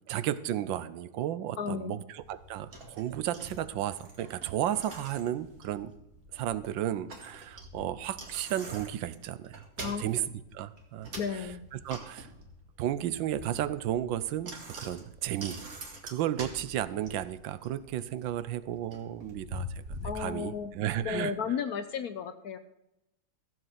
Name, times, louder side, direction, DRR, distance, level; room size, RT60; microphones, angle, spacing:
voice 1, 0.1-5.9 6.3-10.3 10.5-11.4 11.7-12.3 12.8-15.6 16.0-19.7 20.1-21.3, right 11 dB, 80° right, 15 dB, 1.4 m, -33 dB
voice 2, 1.6-2.0 9.8-10.1 11.2-11.7 20.0-20.7 21.0-22.6, left 7 dB, 65° left, 11 dB, 1.0 m, -34 dB
Bicycle, 2.2-21.1, equal, 50° right, 2.3 m, -46 dB
15.0 x 7.7 x 5.8 m, 0.87 s
omnidirectional pair, 2.1 m